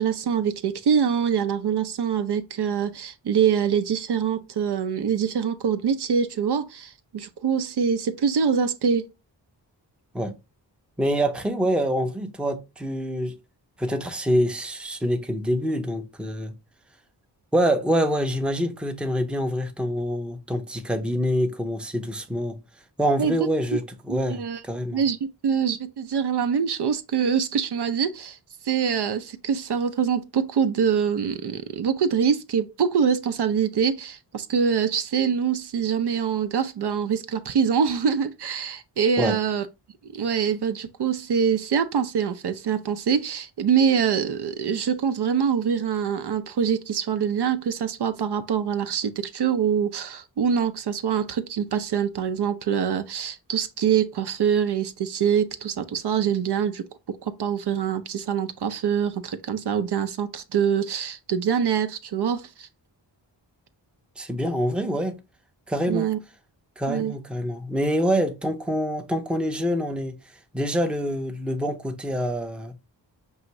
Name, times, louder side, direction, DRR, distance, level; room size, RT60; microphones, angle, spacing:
voice 1, 0.0-9.1 23.2-23.4 24.1-24.6 24.9-25.2 25.4-28.4 28.6-39.7 40.1-62.7 65.9-66.2 66.9-67.1, right 7 dB, 60° right, 0.6 m, -24 dB
voice 2, 11.0-13.4 13.8-16.5 17.5-22.6 23.0-25.0 39.2-39.4 64.2-65.2 65.7-66.1 66.8-70.2 70.5-72.7, equal, ahead, 0.6 m, -26 dB
5.5 x 2.6 x 3.0 m
cardioid pair, 55°, 45 cm